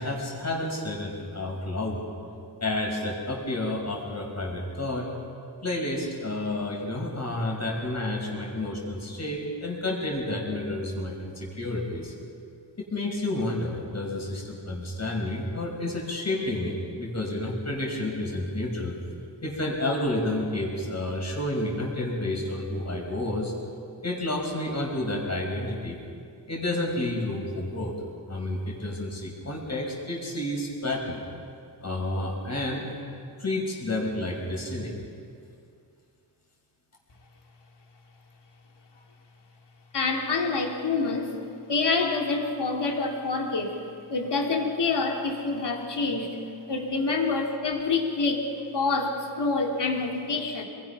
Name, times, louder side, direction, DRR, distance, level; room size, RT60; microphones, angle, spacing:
voice 1, 0.0-2.0 2.6-5.1 5.6-12.1 12.8-19.0 19.4-23.5 24.0-26.0 26.5-28.0 28.3-31.2 31.8-33.0 33.4-35.0, left 1 dB, 40° left, -2 dB, 6.0 m, -30 dB
voice 2, 39.9-41.3 41.7-43.8 44.1-46.4 46.7-48.5 48.7-50.6, left 3 dB, 70° left, 1 dB, 2.9 m, -27 dB
28.0 x 22.0 x 6.0 m, 2.4 s
wide cardioid pair, 125°, 42 cm